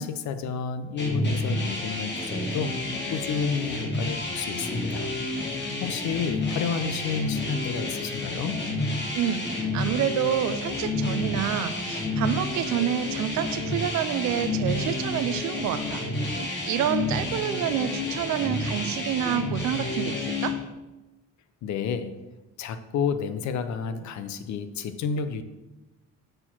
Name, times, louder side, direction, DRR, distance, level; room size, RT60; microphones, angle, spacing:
voice 1, 0.0-5.1 5.8-8.6 21.6-22.2 22.6-25.4, left 6 dB, 70° left, 10 dB, 0.7 m, -30 dB
sound 1, 1.0-20.5, left 2 dB, 40° left, 1.8 m, -30 dB
voice 2, 9.1-16.0 16.3-20.6, right 10 dB, 75° right, 12 dB, 0.6 m, -28 dB
6.5 x 4.5 x 5.8 m, 1.1 s
cardioid pair, 110°, 29 cm